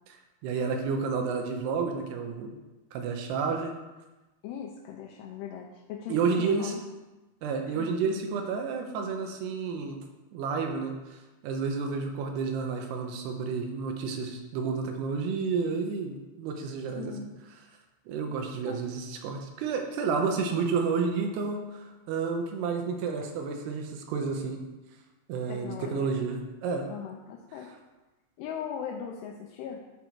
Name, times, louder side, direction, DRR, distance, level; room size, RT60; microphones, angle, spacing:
voice 1, 0.4-2.5 2.9-3.7 6.1-6.7 7.4-10.0 10.3-10.9 11.4-17.1 18.1-24.6 25.3-26.9, right 5 dB, 90° right, 3 dB, 2.9 m, -30 dB
voice 2, 4.4-6.8 7.7-7.9 17.0-17.3 18.7-18.9 25.5-26.1 26.9-27.7 28.4-29.8, left 8 dB, 80° left, 0 dB, 2.6 m, -39 dB
11.5 x 4.1 x 4.5 m, 1.1 s
omnidirectional pair, 4.8 m